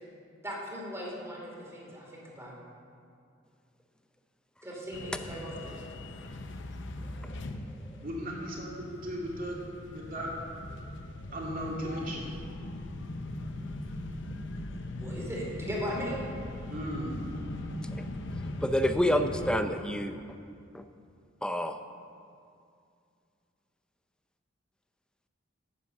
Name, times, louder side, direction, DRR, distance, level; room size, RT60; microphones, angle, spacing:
voice 1, 0.4-2.5 4.6-5.8 14.7-16.3, equal, 15° right, -4 dB, 2.5 m, -38 dB
sound 1, 4.9-19.6, left 1 dB, 65° left, 0.7 m, -40 dB
voice 2, 8.0-9.6 9.9-10.3 11.3-12.3 16.7-17.1 19.1-19.3, equal, 45° right, -3 dB, 2.3 m, -36 dB
voice 3, 18.6-20.1 20.7-20.8 21.4-21.8, equal, 5° left, 8 dB, 0.5 m, -28 dB
9.9 x 8.3 x 6.6 m, 2.4 s
head